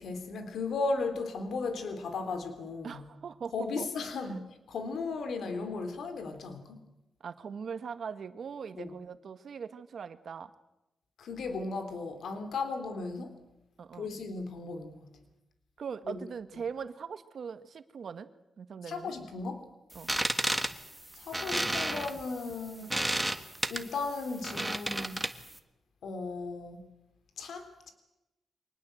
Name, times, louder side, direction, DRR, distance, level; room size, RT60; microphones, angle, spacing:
voice 1, 0.0-3.0 3.5-6.8 8.8-8.9 11.2-13.4 13.9-15.1 16.0-16.2 18.8-19.6 21.1-23.0 23.3-23.4 23.7-25.2 26.0-26.9 27.4-27.9, left 3 dB, 75° left, 7 dB, 3.1 m, -36 dB
voice 2, 2.8-3.9 7.2-10.5 13.8-14.1 15.8-18.3 18.6-19.1 19.9-20.1, right 6 dB, 65° right, 11 dB, 1.5 m, -40 dB
sound 1, 19.9-25.6, right 1 dB, 10° right, 1.6 m, -32 dB
24.5 x 19.0 x 7.9 m, 0.94 s
cardioid pair, 85°, 0 cm